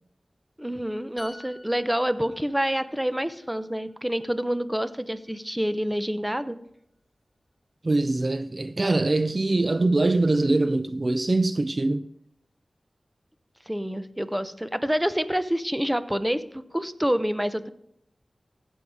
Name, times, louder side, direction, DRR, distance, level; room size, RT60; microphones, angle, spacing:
voice 1, 0.6-6.6 13.7-17.7, equal, 10° right, 0.8 m, -27 dB
sound 1, 1.2-4.8 5.1-5.3, left 1 dB, 15° left, 4.1 m, -50 dB
voice 2, 7.8-12.1, right 2 dB, 45° right, 0.4 m, -23 dB
16.0 x 5.4 x 4.9 m
cardioid pair, 45°, 0 cm